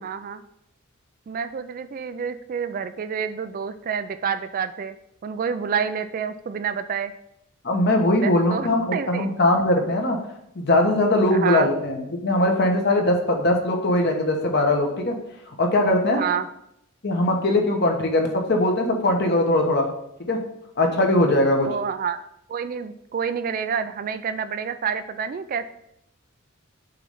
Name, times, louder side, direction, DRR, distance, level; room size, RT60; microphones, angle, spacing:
voice 1, 0.0-0.4 1.3-5.0 5.2-7.1 8.2-9.3 11.3-11.7 16.2-16.5 21.7-22.2 22.5-25.6, right 7 dB, 40° right, 11 dB, 0.3 m, -28 dB
voice 2, 7.6-10.2 10.5-15.2 15.6-16.2 17.0-19.9 20.3-20.4 20.8-21.7, left 1 dB, 50° left, 3 dB, 1.0 m, -20 dB
6.8 x 3.2 x 5.4 m, 0.77 s
head